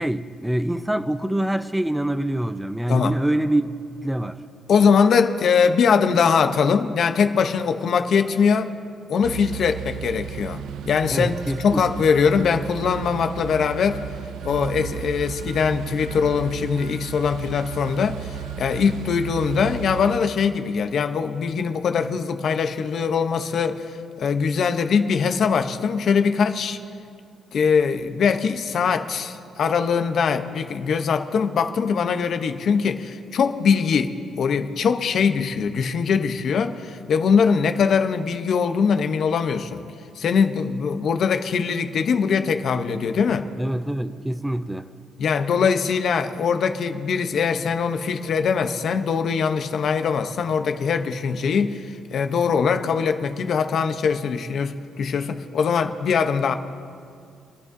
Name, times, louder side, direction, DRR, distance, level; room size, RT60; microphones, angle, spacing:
voice 1, 0.0-4.4 11.1-11.8 43.6-44.9, right 1 dB, 5° right, 0.4 m, -25 dB
voice 2, 4.7-8.7 9.1-11.3 11.6-14.0 14.4-26.8 27.5-39.8 40.2-43.5 45.2-56.5, left 6 dB, 60° left, 0.7 m, -22 dB
sound 1, 9.2-20.2, right 10 dB, 80° right, 0.4 m, -34 dB
25.5 x 11.0 x 2.6 m
cardioid pair, 90°, 0 cm